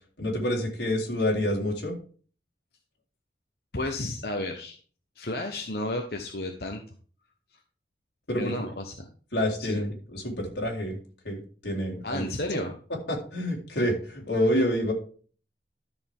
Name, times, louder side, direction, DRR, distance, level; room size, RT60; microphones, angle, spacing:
voice 1, 0.2-2.0 8.3-8.7 9.3-11.0 11.2-12.6 13.1-14.9, left 1 dB, 90° left, -2 dB, 3.8 m, -28 dB
voice 2, 3.7-4.8 5.2-6.8 8.4-9.1 9.6-9.8 12.0-12.7, left 2 dB, 60° left, 3 dB, 1.2 m, -32 dB
12.5 x 6.9 x 3.7 m, 0.41 s
head